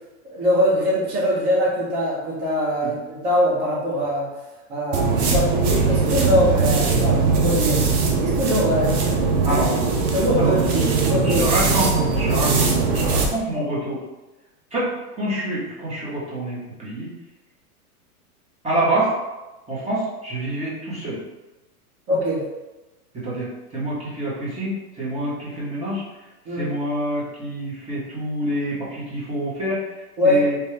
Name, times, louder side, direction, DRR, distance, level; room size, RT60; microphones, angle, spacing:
voice 1, 0.2-4.3 4.7-7.9 8.2-9.6 10.0-11.6 22.1-22.5 26.4-26.7 30.2-30.4, equal, 35° right, -7 dB, 1.2 m, -22 dB
sound 1, 4.9-13.3, right 4 dB, 70° right, 0.9 m, -20 dB
voice 2, 11.0-14.0 14.7-14.9 15.2-17.1 18.6-19.1 19.7-21.2 23.1-26.0 26.5-29.8 30.2-30.6, right 1 dB, 15° right, -8 dB, 1.2 m, -26 dB
3.0 x 2.6 x 3.3 m, 1.1 s
hypercardioid pair, 135°, 46 cm